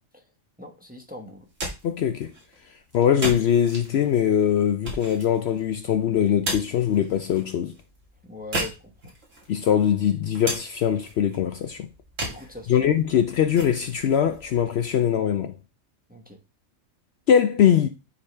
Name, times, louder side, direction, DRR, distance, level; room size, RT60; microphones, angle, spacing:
voice 1, 0.6-1.5 8.2-8.9 12.3-12.9 16.1-16.4, left 2 dB, 10° right, 1.0 m, -41 dB
sound 1, 1.3-15.3, right 1 dB, 75° right, 2.2 m, -37 dB
voice 2, 1.8-2.3 2.9-7.7 9.5-11.9 12.7-15.6 17.3-17.9, left 9 dB, 65° left, 0.8 m, -22 dB
9.7 x 4.0 x 3.3 m
omnidirectional pair, 1.3 m